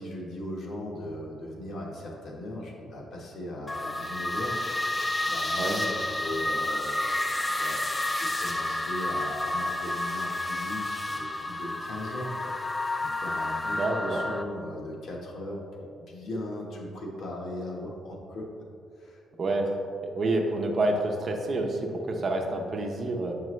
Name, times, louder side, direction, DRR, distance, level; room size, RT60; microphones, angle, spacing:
voice 1, 0.0-4.6 5.2-7.2 7.5-12.5 13.0-18.5 19.0-19.2, left 1 dB, 70° left, -2 dB, 1.3 m, -38 dB
sound 1, 3.7-14.4, left 1 dB, 15° left, 0.4 m, -30 dB
voice 2, 13.7-14.2 19.4-19.7 20.1-23.3, right 2 dB, 50° right, 2 dB, 0.7 m, -28 dB
6.6 x 4.7 x 3.2 m, 2.5 s
cardioid pair, 90°, 0 cm